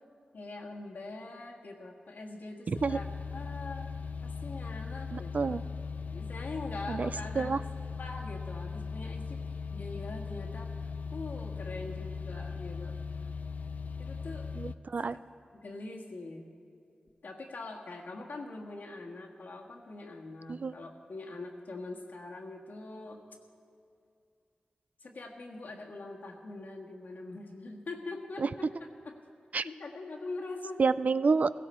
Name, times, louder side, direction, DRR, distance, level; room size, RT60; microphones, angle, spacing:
voice 1, 0.3-3.0 3.3-3.9 4.2-5.6 6.1-7.5 8.0-13.3 14.0-14.5 15.5-16.5 17.2-23.2 25.0-29.2 29.6-30.8, left 2 dB, 80° left, 0 dB, 1.6 m, -43 dB
sound 1, 2.7-14.7, left 5 dB, 60° left, 0.4 m, -39 dB
voice 2, 2.7-3.0 5.1-5.6 6.9-7.1 7.4-7.6 14.5-15.2 20.5-20.8 28.4-28.5 29.5-29.7 30.8-31.5, right 4 dB, 55° right, 15 dB, 0.4 m, -29 dB
16.5 x 16.0 x 4.4 m, 2.4 s
wide cardioid pair, 65°, 3 cm